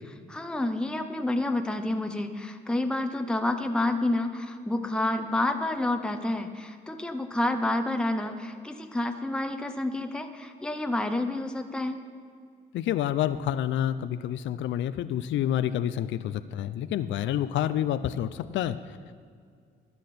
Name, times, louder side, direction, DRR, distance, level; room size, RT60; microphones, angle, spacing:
voice 1, 0.3-12.0, left 2 dB, 5° left, 7 dB, 0.7 m, -29 dB
voice 2, 12.7-19.0, left 11 dB, 70° left, 14 dB, 0.4 m, -28 dB
13.0 x 9.8 x 4.3 m, 2.1 s
cardioid pair, 90°, 20 cm